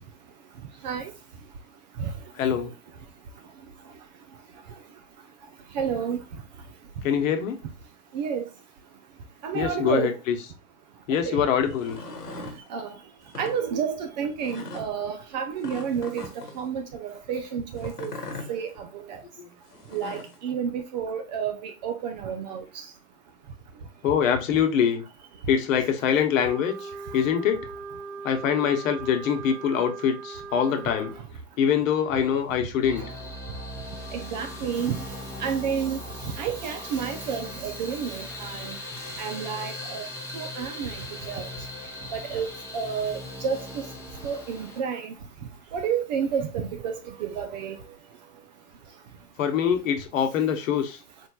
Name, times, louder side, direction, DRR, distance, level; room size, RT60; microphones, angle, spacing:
voice 1, 2.3-2.7 7.0-7.6 9.5-10.4 11.1-12.0 19.4-19.5 24.0-25.0 25.5-27.7 28.2-31.1 31.6-33.0 49.4-51.0, left 8 dB, 55° left, 0.9 m, -24 dB
voice 2, 5.8-6.2 8.1-8.4 9.4-10.1 11.3-11.4 12.7-12.9 13.4-16.3 16.6-18.1 18.5-18.7 19.1-19.2 19.9-22.6 34.1-35.0 35.4-36.0 36.4-38.7 39.2-40.1 40.3-40.9 41.3-41.5 42.1-43.6 44.2-45.1 45.7-47.0 47.2-47.8, right 7 dB, 30° right, 0.4 m, -30 dB
sound 1, 11.7-12.6 13.2-13.6 14.4-14.9 15.6-16.6 17.8-18.5 19.7-20.4, left 3 dB, 85° left, 1.1 m, -39 dB
Wind instrument woodwind instrument, 26.4-31.2, right 4 dB, 55° right, 1.1 m, -39 dB
sound 2, 32.8-44.8, left 1 dB, 5° left, 0.8 m, -39 dB
4.3 x 3.2 x 2.2 m
hypercardioid pair, 110°, 46 cm